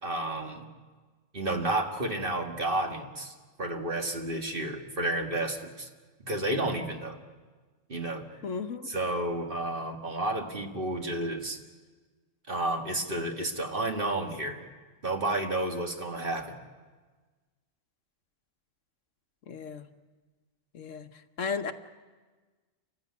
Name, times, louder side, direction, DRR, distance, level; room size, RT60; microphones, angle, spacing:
voice 1, 0.0-0.7 1.3-5.9 6.2-7.2 7.9-8.3 8.8-11.6 12.5-14.6 15.0-16.6, right 2 dB, 40° right, 2.0 m, -31 dB
voice 2, 8.4-8.9 19.5-19.8 20.7-21.1 21.4-21.7, left 5 dB, 70° left, 1.3 m, -34 dB
29.0 x 14.5 x 9.5 m
omnidirectional pair, 1.4 m